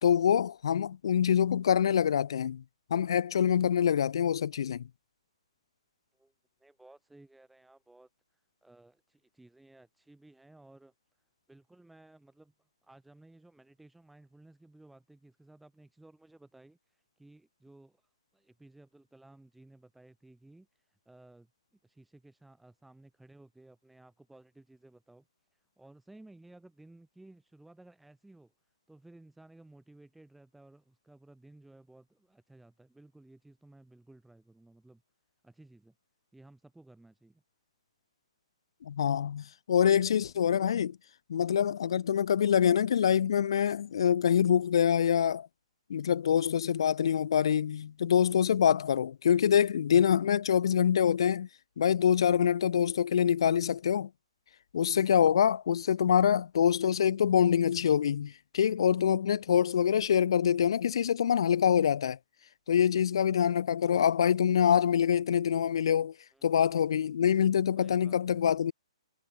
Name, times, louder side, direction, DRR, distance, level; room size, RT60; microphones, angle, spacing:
voice 1, 0.0-2.6 2.9-4.8 38.8-41.0 41.3-45.5 45.9-51.5 51.8-54.1 54.7-62.2 62.7-66.1 66.4-68.7, left 8 dB, 50° left, 1.9 m, -25 dB
voice 2, 6.6-10.9 11.5-25.3 25.5-28.5 28.9-35.0 35.4-35.9 36.3-37.4 66.3-67.0 67.7-68.5, right 2 dB, ahead, 5.3 m, -57 dB
hypercardioid pair, 175°, 3 cm